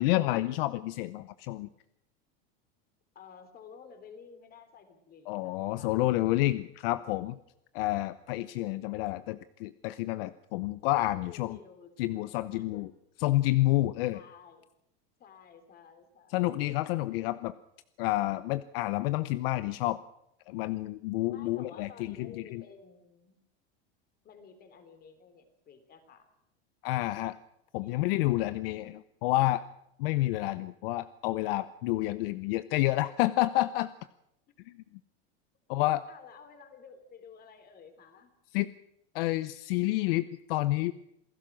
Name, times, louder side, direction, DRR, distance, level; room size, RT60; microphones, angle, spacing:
voice 1, 0.0-1.7 5.3-7.4 7.7-11.6 12.0-12.9 13.2-14.2 16.3-17.5 18.0-20.0 20.5-22.6 26.8-27.4 27.7-29.6 30.0-33.9 34.7-34.8 35.7-36.0 38.5-38.7 39.1-40.9, left 17 dB, 65° left, 15 dB, 0.8 m, -29 dB
voice 2, 3.1-6.0 11.0-12.8 14.1-14.7 15.2-16.8 21.3-23.3 24.2-26.3 27.8-28.0 36.1-38.3, left 6 dB, 30° left, 9 dB, 3.6 m, -52 dB
28.0 x 16.0 x 6.2 m, 0.82 s
supercardioid pair, 145°, 30 cm